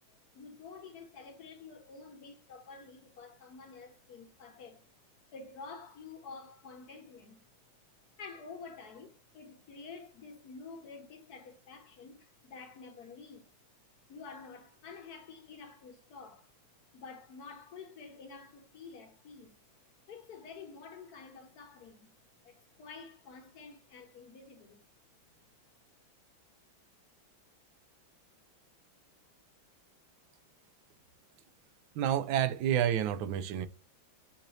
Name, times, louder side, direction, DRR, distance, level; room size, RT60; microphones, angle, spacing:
voice 1, 0.1-4.8 5.3-7.5 8.2-13.5 14.1-16.5 16.9-19.6 20.1-22.1 22.4-24.8, left 4 dB, 60° left, 1.1 m, -49 dB
voice 2, 31.9-33.7, right 10 dB, 75° right, 1.3 m, -29 dB
6.6 x 2.6 x 3.0 m
omnidirectional pair, 2.2 m